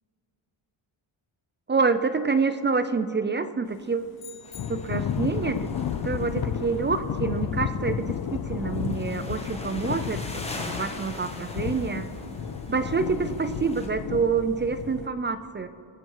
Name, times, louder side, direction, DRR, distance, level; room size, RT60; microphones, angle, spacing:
voice 1, 1.7-4.1 4.7-5.7 6.0-12.1 12.7-15.7, right 4 dB, 25° right, 11 dB, 0.4 m, -27 dB
sound 1, 4.2-5.3, left 9 dB, 70° left, 1.3 m, -47 dB
sound 2, 4.4-13.9, left 2 dB, 15° left, 1.4 m, -42 dB
Thunder / Rain, 4.5-15.1, left 8 dB, 50° left, 0.7 m, -32 dB
23.5 x 7.9 x 4.6 m, 2.5 s
wide cardioid pair, 140°, 48 cm